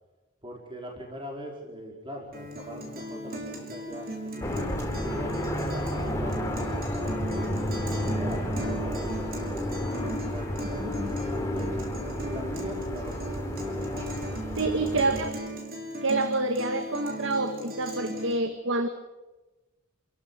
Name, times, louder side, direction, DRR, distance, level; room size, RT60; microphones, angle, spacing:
voice 1, 0.4-4.7 5.0-7.7 8.0-9.7 10.0-11.7 12.2-13.8 14.5-15.3, equal, 25° right, 0 dB, 4.7 m, -41 dB
Guitar, 2.3-18.3, right 1 dB, 45° right, 6.0 m, -37 dB
sound 1, 4.4-15.3, equal, 15° left, 3.5 m, -32 dB
voice 2, 10.8-11.1 14.6-15.3 16.0-18.9, right 2 dB, 65° right, 8 dB, 1.9 m, -27 dB
29.0 x 17.0 x 8.3 m, 1.1 s
head